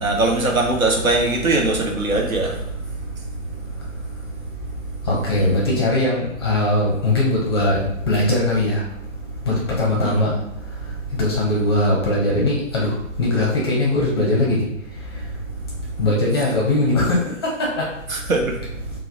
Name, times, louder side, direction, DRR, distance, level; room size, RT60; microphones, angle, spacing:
voice 1, 0.0-2.5 5.4-5.5 10.0-10.4 18.1-18.6, right 2 dB, 85° right, 2 dB, 0.8 m, -21 dB
voice 2, 5.1-7.8 8.1-8.8 9.5-10.3 11.2-12.9 13.2-14.6 16.0-17.2 17.4-17.8, left 1 dB, 20° left, -4 dB, 0.5 m, -20 dB
4.6 x 2.0 x 2.6 m, 0.81 s
figure-of-eight pair, 135°, 40 cm